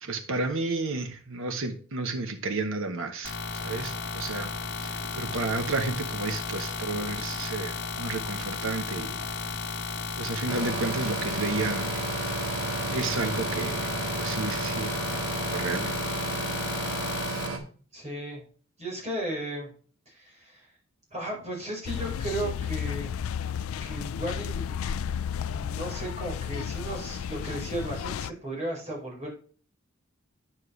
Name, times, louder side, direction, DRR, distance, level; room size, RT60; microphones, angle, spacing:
voice 1, 0.0-3.4 3.6-4.5 4.8-9.2 10.2-12.0 12.9-13.9 14.2-14.9 15.5-15.9, right 3 dB, 65° right, 6 dB, 1.0 m, -32 dB
sound 1, 3.2-17.5, left 4 dB, 55° left, 1.6 m, -34 dB
sound 2, 10.5-17.6, right 3 dB, 90° right, 1.7 m, -32 dB
voice 2, 17.9-18.4 18.8-19.7 20.1-20.7 21.1-23.1 23.8-24.7 25.5-29.3, right 1 dB, 35° right, -2 dB, 4.8 m, -35 dB
sound 3, 21.8-28.3, left 8 dB, 70° left, 0.4 m, -33 dB
9.5 x 7.5 x 3.2 m, 0.42 s
head